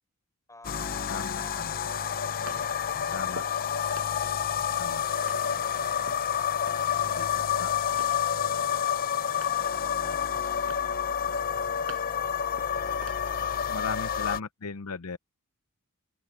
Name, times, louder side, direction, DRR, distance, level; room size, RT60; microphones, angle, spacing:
voice 1, 0.5-6.4 6.9-11.7 12.1-14.4, left 2 dB, 15° left, 5.8 m, -53 dB
sound 1, 0.6-14.4, left 8 dB, 40° left, 0.6 m, -29 dB
voice 2, 1.1-1.8 3.1-3.4 4.7-5.0 7.1-7.3 7.6-7.7 13.7-15.2, left 5 dB, 80° left, 0.7 m, -37 dB
sound 2, 1.9-3.6 4.0-6.3 6.7-7.1 7.3-8.2 8.6-9.7 10.0-10.4 10.7-12.2 12.5-13.9 14.3-14.4, right 3 dB, 70° right, 5.7 m, -48 dB
head